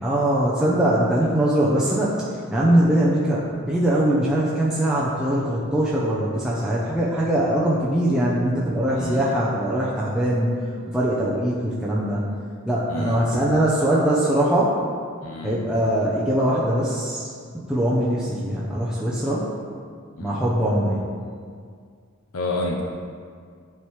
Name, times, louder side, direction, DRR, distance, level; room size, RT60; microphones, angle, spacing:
voice 1, 0.0-2.1 2.5-10.5 10.9-12.2 12.6-14.7 15.4-17.3 17.7-19.4 20.2-21.0, right 1 dB, 5° right, -8 dB, 0.7 m, -21 dB
voice 2, 9.0-9.4 12.9-13.5 15.2-15.6 20.2-20.4 22.3-22.8, left 1 dB, 75° left, 0 dB, 0.7 m, -29 dB
11.5 x 4.6 x 3.2 m, 2.1 s
head